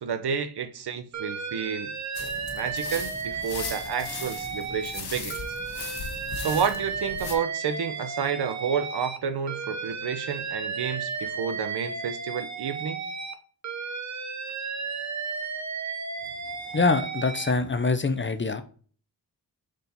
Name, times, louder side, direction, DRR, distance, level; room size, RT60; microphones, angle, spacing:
voice 1, 0.0-5.4 6.4-13.0, right 7 dB, 70° right, 0.8 m, -30 dB
Alarm, 1.1-5.0 5.3-9.2 9.5-13.3 13.6-17.5, right 5 dB, 45° right, 0.9 m, -34 dB
sound 1, 2.1-7.3, left 5 dB, 70° left, 1.4 m, -38 dB
voice 2, 16.7-18.6, left 3 dB, 30° left, 0.7 m, -24 dB
6.2 x 4.1 x 4.1 m
cardioid pair, 70°, 41 cm